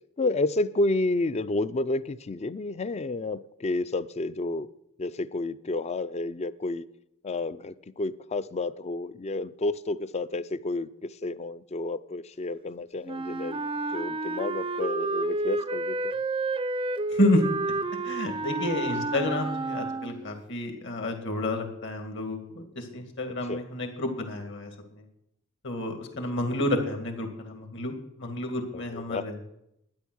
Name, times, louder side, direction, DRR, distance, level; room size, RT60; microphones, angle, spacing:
voice 1, 0.2-4.7 5.0-6.8 7.2-13.6 13.9-16.1 23.5-23.6 28.7-29.3, left 2 dB, 30° left, 16 dB, 0.4 m, -30 dB
Wind instrument woodwind instrument, 13.1-20.4, right 2 dB, 25° right, 0.5 m, -30 dB
voice 2, 17.1-17.5 18.0-24.7 25.0-25.1 25.6-29.4, left 1 dB, 60° left, 5 dB, 2.2 m, -30 dB
12.0 x 10.0 x 6.3 m, 0.81 s
head